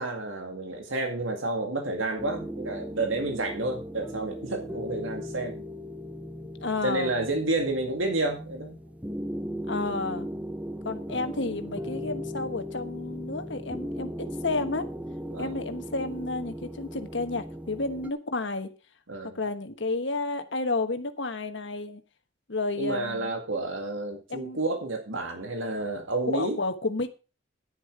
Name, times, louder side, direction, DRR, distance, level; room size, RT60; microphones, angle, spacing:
voice 1, 0.0-5.6 6.8-8.8 15.3-15.6 19.1-19.4 22.8-26.6, right 2 dB, 90° right, 4 dB, 2.0 m, -30 dB
sound 1, 2.2-18.1, equal, 10° right, 0.7 m, -37 dB
voice 2, 6.6-7.1 9.7-10.3 10.8-14.9 15.4-18.7 19.2-22.0 22.5-23.3 24.3-24.6 26.3-27.1, left 3 dB, 65° left, 8 dB, 1.3 m, -31 dB
10.0 x 10.0 x 4.9 m, 0.32 s
head